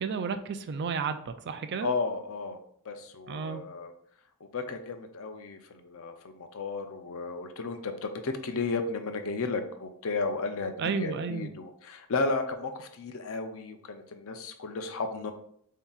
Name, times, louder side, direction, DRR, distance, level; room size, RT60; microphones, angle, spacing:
voice 1, 0.0-1.9 3.3-3.6 10.8-11.5, right 5 dB, 50° right, 9 dB, 0.4 m, -32 dB
voice 2, 1.8-2.6 2.9-3.9 4.5-15.3, left 3 dB, 65° left, 7 dB, 0.6 m, -33 dB
7.1 x 2.8 x 2.4 m, 0.67 s
head